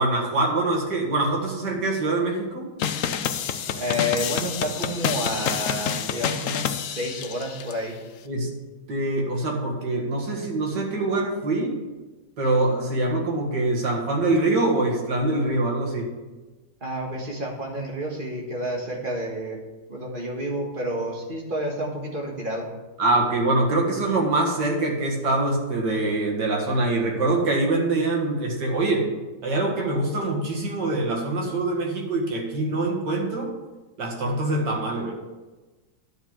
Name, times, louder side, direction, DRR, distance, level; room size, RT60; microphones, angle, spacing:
voice 1, 0.0-2.7 8.2-8.6 8.9-11.8 12.4-16.1 23.0-29.1 29.4-33.6 34.0-35.1, right 2 dB, 60° right, 0 dB, 2.3 m, -24 dB
sound 1, 2.8-7.7, left 8 dB, 75° left, 0.7 m, -28 dB
voice 2, 3.8-8.0 16.8-19.6 19.9-22.7, equal, 30° right, 0 dB, 1.6 m, -30 dB
10.5 x 5.1 x 7.3 m, 1.2 s
omnidirectional pair, 2.1 m